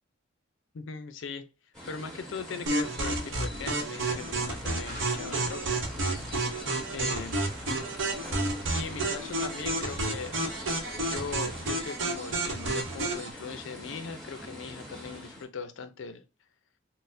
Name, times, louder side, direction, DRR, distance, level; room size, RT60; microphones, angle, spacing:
voice 1, 0.7-1.5 1.9-5.9 6.9-7.4 8.7-10.4 10.9-16.2, left 5 dB, 75° left, 0.4 m, -40 dB
sound 1, 1.7-15.5, equal, ahead, 1.8 m, -44 dB
sound 2, 2.7-13.3, right 2 dB, 70° right, 0.8 m, -31 dB
sound 3, 4.1-11.6, left 1 dB, 25° right, 1.0 m, -48 dB
4.1 x 2.0 x 2.5 m
head